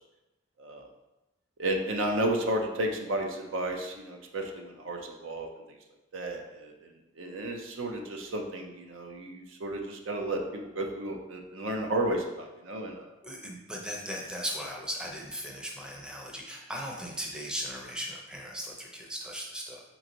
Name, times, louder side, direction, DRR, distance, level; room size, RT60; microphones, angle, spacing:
voice 1, 1.6-5.5 6.1-6.9 7.2-13.1, right 1 dB, 75° right, 3 dB, 0.6 m, -32 dB
voice 2, 13.2-19.8, equal, 5° right, -1 dB, 0.6 m, -37 dB
4.4 x 3.1 x 3.8 m, 0.99 s
head